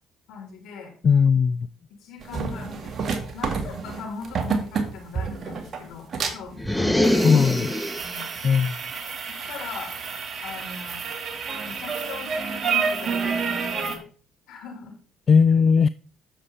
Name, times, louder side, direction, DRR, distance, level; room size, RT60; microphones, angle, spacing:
voice 1, 0.3-0.9 1.9-7.3 8.0-8.3 9.3-9.9 10.4-11.0 11.6-14.1 14.5-14.9, left 5 dB, 70° left, 4.2 m, -40 dB
voice 2, 1.0-1.7 7.2-7.7 8.4-8.8 15.3-15.9, left 6 dB, 45° left, 0.3 m, -18 dB
sound 1, 2.2-14.0, right 5 dB, 45° right, 2.0 m, -29 dB
sound 2, 6.6-8.2, left 1 dB, 5° left, 1.1 m, -23 dB
9.9 x 7.2 x 3.4 m
hypercardioid pair, 65°, 0 cm